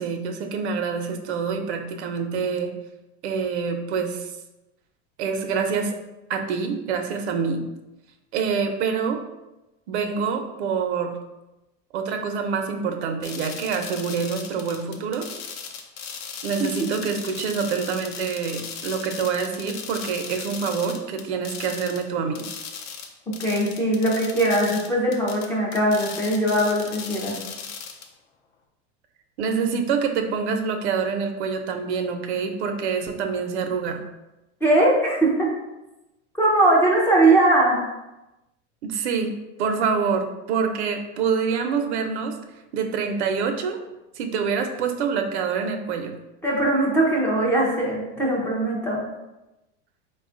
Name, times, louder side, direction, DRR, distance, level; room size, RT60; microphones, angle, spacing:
voice 1, 0.0-2.7 3.2-4.3 5.2-6.0 6.3-7.6 8.3-9.2 9.9-11.1 11.9-15.3 16.4-22.4 29.4-34.0 38.8-39.3 39.6-42.3 42.7-43.8 44.2-46.1, right 5 dB, 85° right, 5 dB, 0.7 m, -26 dB
sound 1, 13.2-22.0 22.3-28.1, left 6 dB, 70° left, 0.6 m, -37 dB
voice 2, 23.4-27.4 34.6-35.5 36.4-37.8 46.4-49.1, right 1 dB, 5° left, -4 dB, 0.4 m, -20 dB
4.2 x 2.3 x 3.7 m, 0.98 s
supercardioid pair, 160°, 33 cm